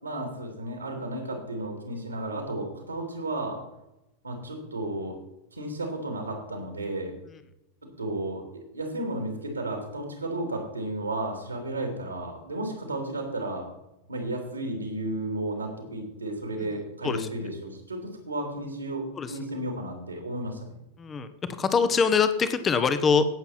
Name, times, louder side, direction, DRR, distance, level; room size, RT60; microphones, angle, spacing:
voice 1, 0.0-3.6 4.2-5.2 5.5-7.1 7.8-8.4 8.7-13.7 14.1-20.7, right 1 dB, 80° right, 3 dB, 2.8 m, -33 dB
voice 2, 21.0-21.3 21.6-23.3, left 5 dB, 20° left, 11 dB, 1.0 m, -23 dB
17.0 x 7.1 x 4.3 m, 0.89 s
figure-of-eight pair, 90°, 0 cm